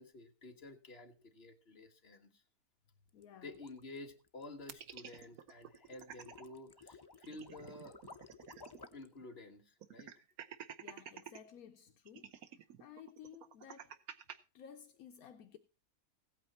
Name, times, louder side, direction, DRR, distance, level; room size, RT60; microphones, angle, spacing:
voice 1, 0.0-2.4 3.4-8.0 8.9-10.1, left 2 dB, 45° left, 1.8 m, -51 dB
voice 2, 3.1-3.5 10.8-12.3 12.8-13.9 14.5-15.6, left 8 dB, 75° left, 1.2 m, -55 dB
sound 1, 3.1-9.1, left 4 dB, 25° left, 0.5 m, -57 dB
sound 2, 4.7-6.4 6.8-6.9 7.2-8.9 9.2-9.3 9.8-11.4 12.1-14.4, right 9 dB, 75° right, 1.4 m, -51 dB
16.5 x 9.0 x 4.2 m
omnidirectional pair, 1.6 m